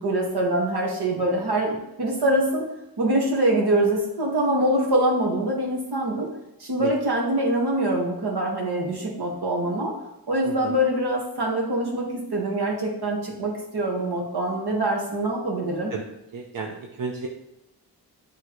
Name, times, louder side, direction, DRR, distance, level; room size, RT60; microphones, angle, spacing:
voice 1, 0.0-2.7 3.0-6.3 6.6-9.9 10.3-15.9, right 1 dB, 70° right, -1 dB, 1.6 m, -24 dB
voice 2, 16.3-17.3, right 4 dB, 55° right, 0 dB, 0.7 m, -32 dB
10.0 x 3.4 x 3.1 m, 0.89 s
wide cardioid pair, 135°, 40 cm